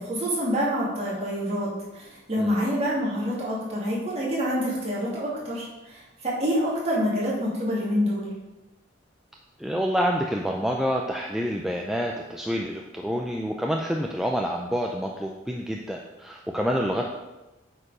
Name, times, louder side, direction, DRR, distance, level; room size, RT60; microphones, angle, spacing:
voice 1, 0.0-8.3, equal, 35° right, -6 dB, 2.7 m, -27 dB
voice 2, 9.6-17.1, equal, ahead, 0 dB, 0.4 m, -27 dB
8.7 x 4.6 x 5.0 m, 1.0 s
head